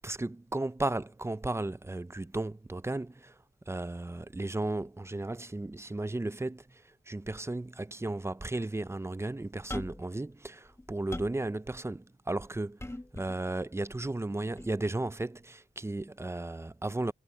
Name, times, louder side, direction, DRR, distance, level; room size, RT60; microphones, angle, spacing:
voice 1, 0.0-3.3 3.7-12.8 13.1-17.1, right 2 dB, 15° right, 0.6 m, -35 dB
sound 1, 9.7-10.1 10.6-11.5 12.8-13.4 14.6-14.7, left 1 dB, 15° left, 1.6 m, -40 dB
wide cardioid pair, 80°, 19 cm